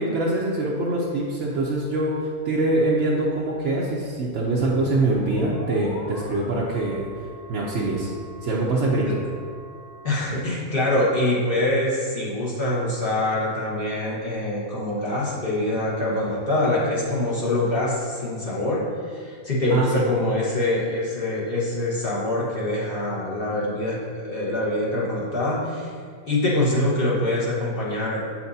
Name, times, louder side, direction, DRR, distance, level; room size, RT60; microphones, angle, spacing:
voice 1, 0.0-7.1 7.5-8.1 8.4-9.1 19.7-20.0, right 2 dB, 55° right, -5 dB, 1.0 m, -24 dB
sound 1, 4.5-10.3, equal, 85° left, 1.4 m, -41 dB
voice 2, 10.0-25.9 26.3-28.2, left 1 dB, 40° left, -6 dB, 1.5 m, -24 dB
7.8 x 5.9 x 2.7 m, 2.1 s
omnidirectional pair, 1.6 m